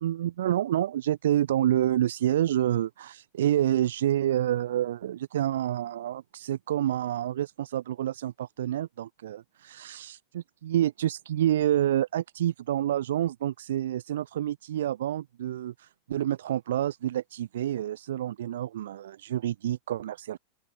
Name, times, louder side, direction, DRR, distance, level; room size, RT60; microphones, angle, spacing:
voice 1, 0.0-20.4, right 12 dB, 80° right, 3.1 m, -28 dB
open air
hypercardioid pair, 110°, 0 cm